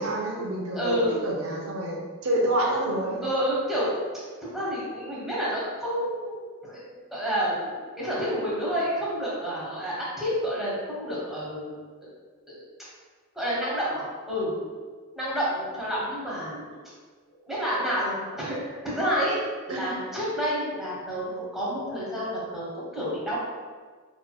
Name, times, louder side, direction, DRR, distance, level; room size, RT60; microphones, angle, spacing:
voice 1, 0.0-3.2 19.7-19.8, right 1 dB, 90° right, -1 dB, 0.8 m, -28 dB
voice 2, 0.7-1.2 3.2-3.9 4.4-6.8 7.1-12.1 12.5-12.6 13.3-14.5 15.1-16.8 17.4-19.4 19.7-23.4, equal, ahead, -8 dB, 1.1 m, -29 dB
4.9 x 3.0 x 2.2 m, 1.5 s
head